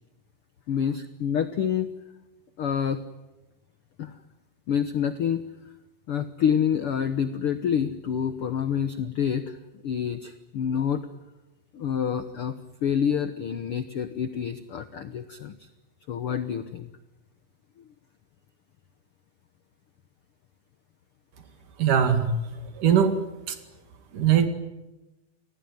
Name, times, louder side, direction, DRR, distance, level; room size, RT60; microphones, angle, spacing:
voice 1, 0.7-1.9 2.6-3.0 4.0-4.1 4.7-5.4 6.1-9.6 9.8-11.1 11.7-12.5 12.8-15.7 16.1-16.9, left 8 dB, 70° left, 11 dB, 1.3 m, -27 dB
voice 2, 21.8-22.3 22.8-23.2 23.5-23.6 24.1-24.5, right 8 dB, 65° right, 8 dB, 3.7 m, -20 dB
29.5 x 20.0 x 9.5 m, 1.0 s
omnidirectional pair, 4.1 m